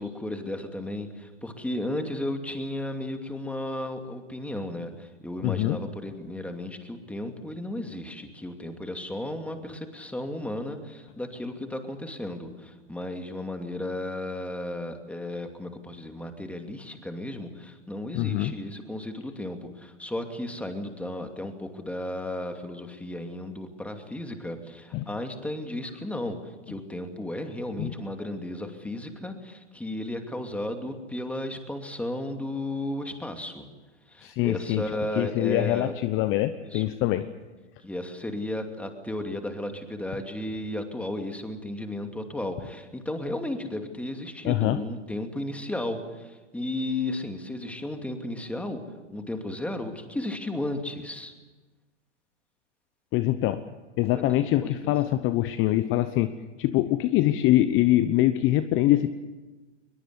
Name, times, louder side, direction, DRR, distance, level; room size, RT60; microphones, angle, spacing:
voice 1, 0.0-33.7 34.1-35.9 36.6-36.9 37.8-48.8 49.1-51.3 54.1-54.9, left 1 dB, 5° left, 5 dB, 2.6 m, -34 dB
voice 2, 5.4-5.8 18.1-18.5 24.9-25.1 27.8-27.9 34.2-34.8 35.2-37.3 44.4-44.8 53.1-53.6 54.0-56.3 56.6-59.1, left 15 dB, 35° left, 12 dB, 1.0 m, -24 dB
22.0 x 21.5 x 8.2 m, 1.2 s
hypercardioid pair, 115°, 36 cm